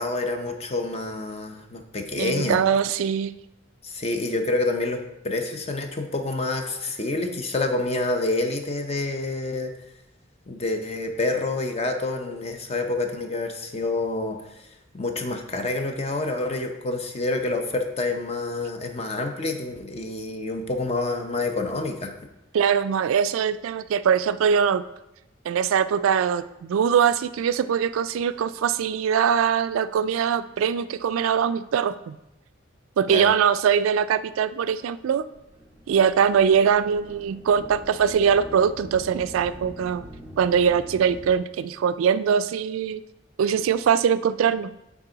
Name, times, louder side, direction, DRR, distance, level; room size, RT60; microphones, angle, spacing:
voice 1, 0.0-2.6 3.8-5.0 5.2-9.7 10.5-22.1 33.1-33.3, left 2 dB, 30° left, 5 dB, 0.7 m, -28 dB
voice 2, 2.2-3.4 22.5-24.8 25.5-32.2 33.0-35.3 35.9-40.1 40.4-43.0 43.4-44.7, right 7 dB, 90° right, 13 dB, 0.3 m, -22 dB
sound 1, 35.2-41.4, equal, 10° right, 1.1 m, -44 dB
9.2 x 3.6 x 3.9 m, 0.88 s
head